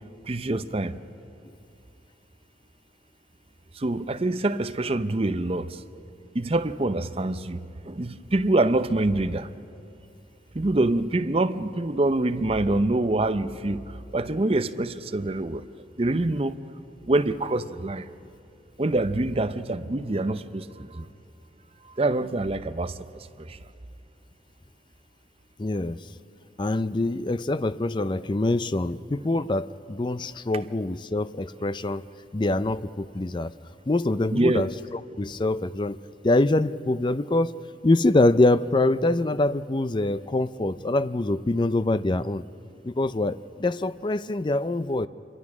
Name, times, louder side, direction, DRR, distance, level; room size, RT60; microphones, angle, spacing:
voice 1, 0.3-1.0 3.7-5.8 6.3-9.5 10.5-15.6 16.0-16.6 17.0-18.1 18.8-21.1 21.8-23.6 34.3-34.7, right 2 dB, 30° right, 0.6 m, -25 dB
voice 2, 25.6-26.0 26.6-32.0 32.3-33.5 33.9-36.0 36.2-37.6 37.8-42.4 42.8-45.1, left 2 dB, 25° left, 0.4 m, -24 dB
26.5 x 23.0 x 6.1 m
head